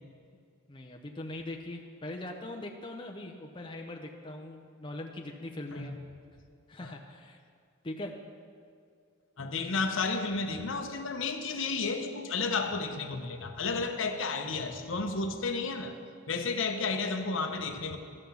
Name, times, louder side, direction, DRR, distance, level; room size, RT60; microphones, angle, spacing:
voice 1, 0.7-6.0 6.7-7.4 7.8-8.1, left 1 dB, 25° left, 2 dB, 0.6 m, -41 dB
voice 2, 9.4-15.9 16.3-18.0, left 4 dB, 60° left, 6 dB, 0.8 m, -32 dB
13.0 x 5.8 x 7.1 m, 2.2 s
head